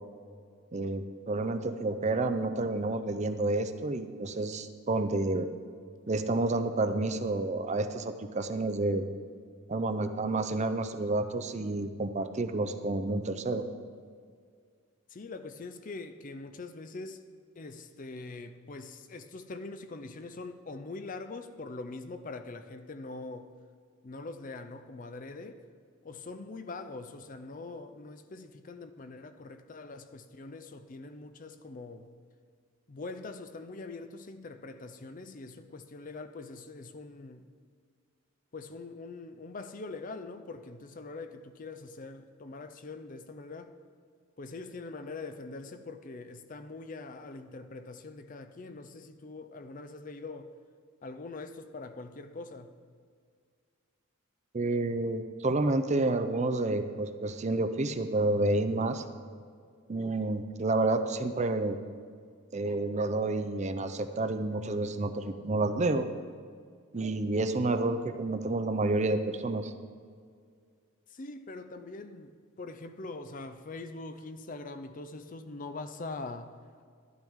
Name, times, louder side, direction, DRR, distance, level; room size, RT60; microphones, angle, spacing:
voice 1, 0.7-5.5 6.1-9.1 9.7-13.6 54.5-59.0 59.9-61.8 62.5-66.1 66.9-69.7, right 2 dB, 35° right, 9 dB, 0.5 m, -29 dB
voice 2, 15.1-17.2 17.6-23.5 24.0-25.6 26.0-32.1 32.9-37.4 38.5-43.7 44.4-50.5 51.0-52.7 71.1-76.5, left 3 dB, 40° left, 10 dB, 0.5 m, -43 dB
12.0 x 12.0 x 3.6 m, 2.1 s
head